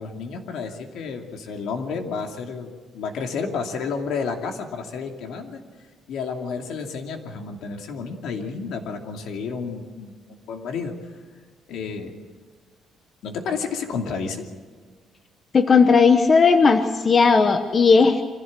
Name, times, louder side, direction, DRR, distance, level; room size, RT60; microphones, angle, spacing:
voice 1, 0.0-5.6 6.1-10.9 11.7-12.1 13.2-14.4, left 5 dB, 70° left, 3 dB, 2.6 m, -31 dB
voice 2, 15.5-18.2, left 5 dB, 30° left, 7 dB, 0.9 m, -16 dB
25.0 x 15.5 x 7.6 m, 1.5 s
cardioid pair, 165°, 0 cm